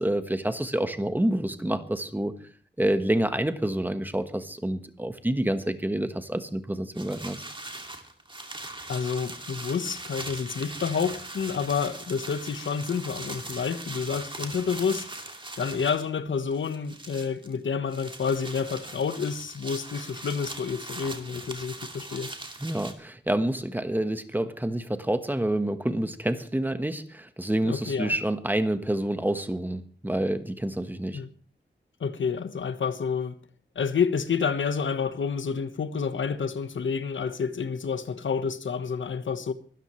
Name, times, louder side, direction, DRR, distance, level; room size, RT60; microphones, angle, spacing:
voice 1, 0.0-2.3 2.8-7.4 22.6-31.2, right 1 dB, 10° right, 1.4 m, -28 dB
sound 1, 7.0-16.1 16.4-17.6 17.9-22.9, right 2 dB, 25° right, 2.4 m, -40 dB
voice 2, 8.9-15.1 15.6-22.3 27.6-28.2 31.1-31.3 32.0-33.3 33.7-39.5, left 6 dB, 90° left, 1.3 m, -29 dB
24.0 x 13.0 x 3.2 m
wide cardioid pair, 100°, 19 cm